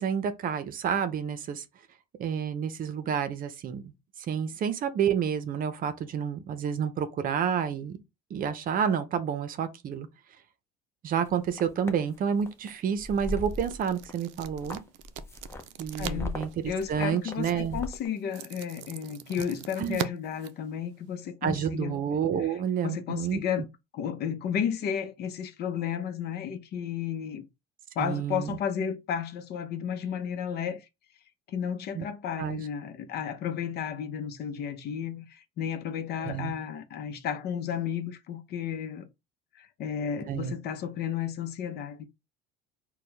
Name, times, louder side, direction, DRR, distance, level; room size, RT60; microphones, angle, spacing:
voice 1, 0.0-1.6 2.2-3.9 4.3-8.0 8.3-10.1 11.0-14.8 15.8-17.8 19.8-20.1 21.4-23.4 28.0-28.6 31.9-32.0 32.4-32.6 36.2-36.5 40.3-40.5, right 8 dB, 45° right, 0.7 m, -29 dB
sound 1, 11.2-12.0 12.5-12.7 13.0-14.1 14.4-18.1, left 2 dB, 10° left, 0.7 m, -38 dB
sound 2, 12.2-21.3, right 11 dB, 85° right, 0.5 m, -43 dB
voice 2, 16.0-16.4 16.7-22.0 22.4-23.7 23.9-27.5 28.0-30.8 31.5-39.1 39.6-42.0, left 8 dB, 50° left, 0.7 m, -33 dB
4.3 x 2.3 x 3.3 m
supercardioid pair, 105°, 21 cm